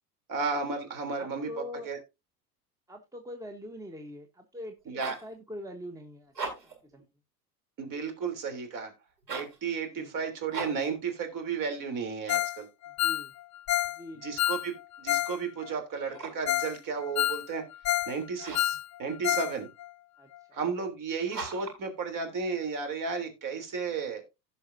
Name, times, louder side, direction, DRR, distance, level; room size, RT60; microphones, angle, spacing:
voice 1, 0.3-1.5 1.9-2.0 4.9-5.2 7.8-8.9 9.3-12.7 14.2-17.6 18.1-19.7 20.5-24.2, right 5 dB, 40° right, 3.3 m, -33 dB
voice 2, 1.2-1.9 2.9-7.1 9.9-10.1 13.0-13.3 13.9-14.4 20.2-20.6, left 1 dB, 5° right, 1.1 m, -43 dB
sound 1, 4.7-5.3 6.2-6.8 9.2-9.6 10.5-10.9 16.0-16.5 18.4-18.8 21.3-21.8, right 4 dB, 90° right, 4.7 m, -39 dB
Ringtone, 12.3-12.6 12.8-15.4 15.6-15.7 16.2-16.3 16.5-16.7 17.0-18.2 18.4-19.5 19.8-19.9 20.3-20.4, left 13 dB, 35° left, 0.8 m, -29 dB
16.5 x 5.7 x 2.7 m
hypercardioid pair, 85°, 48 cm